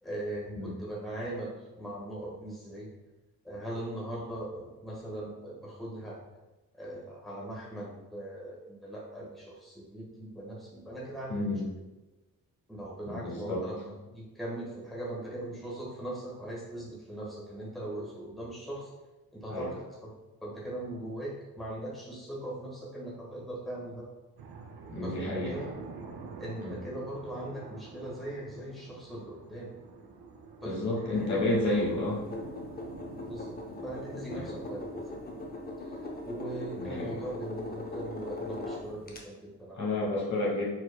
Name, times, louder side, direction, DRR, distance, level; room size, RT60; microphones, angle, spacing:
voice 1, 0.0-2.9 3.4-6.2 6.7-11.4 12.7-18.9 19.3-19.7 20.4-24.1 25.0-25.7 26.4-29.7 30.6-31.7 33.3-33.6 33.8-35.2 35.8-35.9 36.2-40.1, right 1 dB, ahead, -6 dB, 1.4 m, -40 dB
voice 2, 11.3-11.6 13.1-13.6 19.5-19.7 24.9-25.7 26.6-26.8 30.6-32.2 34.3-34.5 36.8-37.2 39.8-40.7, left 2 dB, 45° left, -4 dB, 1.2 m, -31 dB
sound 1, 24.4-35.5, right 4 dB, 80° right, 0.6 m, -48 dB
sound 2, 31.1-39.2, left 2 dB, 25° left, 0.7 m, -40 dB
4.5 x 4.1 x 2.2 m, 1.1 s
cardioid pair, 100°, 38 cm